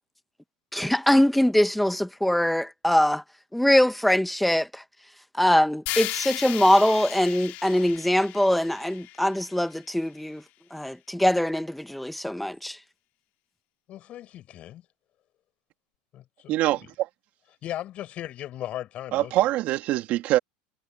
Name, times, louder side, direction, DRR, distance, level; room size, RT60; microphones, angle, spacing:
voice 1, 0.7-3.2 3.5-4.8 5.3-10.4 10.7-12.8, left 1 dB, ahead, 1.1 m, -22 dB
sound 1, 5.9-9.9, left 19 dB, 55° left, 2.4 m, -36 dB
voice 2, 13.9-14.8 16.1-16.8 17.6-19.3, left 13 dB, 40° left, 7.8 m, -37 dB
voice 3, 16.5-17.1 19.1-20.4, right 15 dB, 45° right, 2.5 m, -24 dB
supercardioid pair, 145°, 3 cm